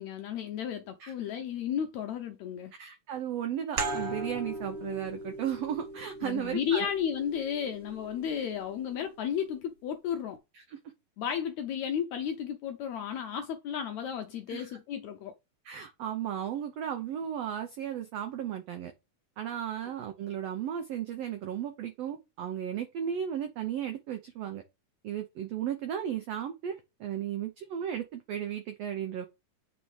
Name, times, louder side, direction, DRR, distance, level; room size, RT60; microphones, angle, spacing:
voice 1, 0.0-2.7 6.2-10.4 11.2-15.3, left 8 dB, 80° left, 1.6 m, -33 dB
voice 2, 2.8-6.9 10.5-10.8 14.5-14.7 15.6-18.9 19.4-24.6 25.0-26.7 27.0-29.3, right 9 dB, 85° right, 1.4 m, -35 dB
sound 1, 3.8-9.0, right 2 dB, 50° right, 1.7 m, -39 dB
7.5 x 4.1 x 4.8 m
omnidirectional pair, 3.9 m